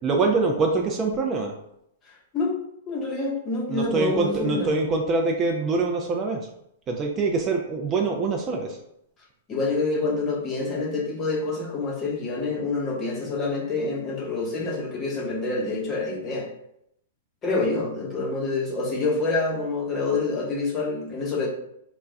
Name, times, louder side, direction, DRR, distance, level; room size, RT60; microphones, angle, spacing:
voice 1, 0.0-1.6 3.7-6.5 6.9-8.8, right 3 dB, 30° right, 2 dB, 0.4 m, -24 dB
voice 2, 2.9-4.9 9.5-16.5 17.4-21.5, left 3 dB, 25° left, -2 dB, 0.8 m, -27 dB
2.2 x 2.1 x 3.5 m, 0.75 s
hypercardioid pair, 110°, 0 cm